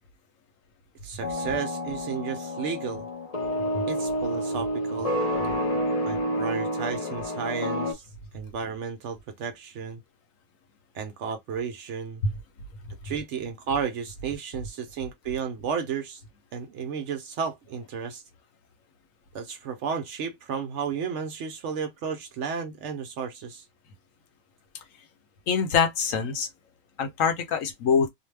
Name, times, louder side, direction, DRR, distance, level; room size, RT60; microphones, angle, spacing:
voice 1, 1.0-3.1 3.9-5.2 6.0-8.0 8.3-10.0 10.9-12.2 13.0-16.2 16.5-18.2 19.3-23.6, right 6 dB, 65° right, 0.8 m, -33 dB
sound 1, 1.2-7.9, equal, 40° left, 0.5 m, -29 dB
voice 2, 25.5-26.5 27.0-28.1, left 6 dB, 70° left, 1.0 m, -24 dB
2.6 x 2.2 x 3.2 m
omnidirectional pair, 1.5 m